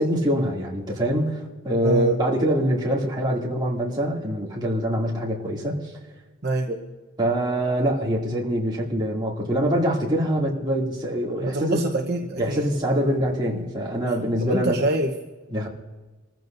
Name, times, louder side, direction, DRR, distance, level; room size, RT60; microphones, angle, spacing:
voice 1, 0.0-5.8 6.7-6.8 7.2-11.8 12.4-14.8 15.5-15.7, right 1 dB, 20° right, -4 dB, 2.6 m, -24 dB
voice 2, 1.8-2.1 6.4-6.7 11.4-12.6 12.9-13.0 14.4-15.1, right 2 dB, 50° right, 1 dB, 1.0 m, -25 dB
27.5 x 15.0 x 2.7 m, 1.3 s
head